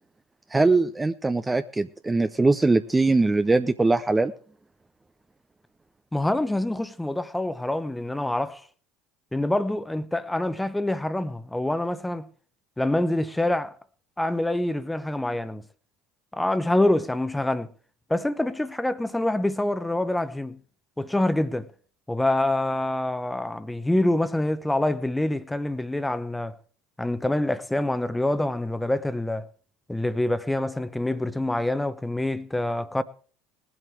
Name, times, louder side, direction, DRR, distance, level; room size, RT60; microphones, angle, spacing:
voice 1, 0.5-4.3, right 3 dB, 15° right, 0.6 m, -21 dB
voice 2, 6.1-8.6 9.3-12.3 12.8-13.7 14.2-15.6 16.3-17.7 18.1-20.6 21.0-21.7 22.1-26.5 27.0-29.4 29.9-33.0, left 1 dB, 5° left, 0.9 m, -26 dB
20.0 x 7.8 x 4.6 m
hypercardioid pair, 70°, 0 cm